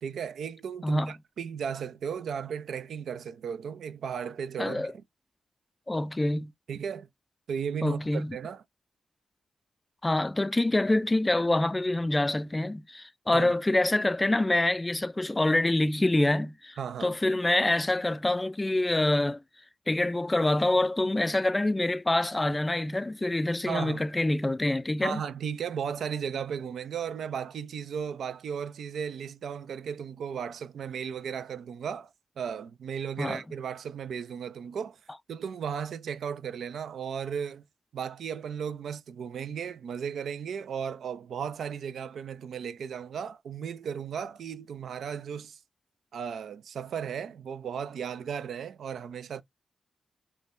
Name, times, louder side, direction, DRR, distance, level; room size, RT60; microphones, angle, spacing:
voice 1, 0.0-4.9 6.7-7.1 7.5-8.6 13.3-13.5 16.8-17.2 23.7-24.0 25.0-32.1 32.4-35.0 35.3-37.6 37.9-45.6 46.1-49.4, right 7 dB, 80° right, 0.3 m, -35 dB
voice 2, 0.8-1.1 4.6-4.9 5.9-6.5 7.8-8.4 10.0-19.4 19.9-25.2 33.2-33.4, left 2 dB, 25° left, 0.3 m, -26 dB
3.6 x 2.2 x 2.5 m
supercardioid pair, 45°, 0 cm